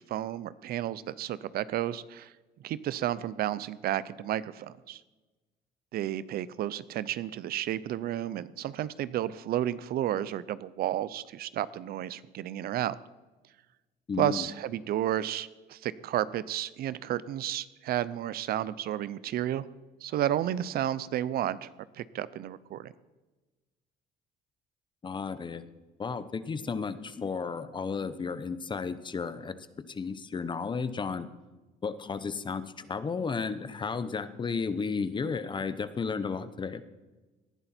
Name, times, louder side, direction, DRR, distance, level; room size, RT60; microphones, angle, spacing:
voice 1, 0.1-2.3 2.6-5.0 5.9-12.9 14.2-19.7 20.0-22.9, right 12 dB, 65° right, 17 dB, 0.6 m, -32 dB
voice 2, 14.1-14.5 25.0-25.6 26.0-29.5 29.9-31.3 31.8-36.8, left 5 dB, 30° left, 13 dB, 0.9 m, -33 dB
18.5 x 11.0 x 4.4 m, 1.2 s
cardioid pair, 110°, 17 cm